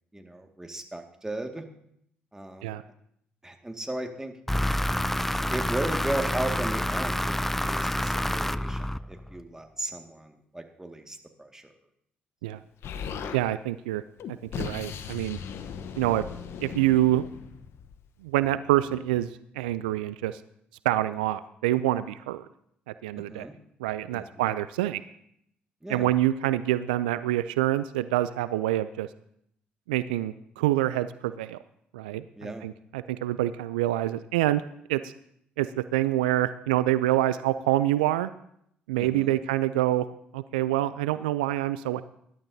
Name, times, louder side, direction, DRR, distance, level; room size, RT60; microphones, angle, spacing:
voice 1, 0.1-1.6 2.3-2.8 3.4-4.3 4.9-5.0 5.5-11.7 23.1-23.5 24.1-24.5 25.8-26.1 32.4-32.7 39.0-39.4, right 1 dB, 10° right, 4 dB, 1.9 m, -36 dB
sound 1, 4.5-9.4, left 1 dB, 5° left, 0.4 m, -28 dB
Explosion, 12.8-13.4 14.2-18.1, left 7 dB, 65° left, 1.0 m, -38 dB
voice 2, 13.3-14.0 14.3-15.4 16.0-16.2 16.6-17.3 18.2-19.3 19.6-20.4 20.8-22.5 23.0-23.5 23.8-25.0 25.9-29.1 29.9-31.6 31.9-34.6 34.9-35.1 35.6-38.3 38.9-40.1 40.3-42.0, right 14 dB, 85° right, 14 dB, 0.3 m, -26 dB
20.0 x 11.5 x 2.7 m, 0.72 s
hypercardioid pair, 50°, 5 cm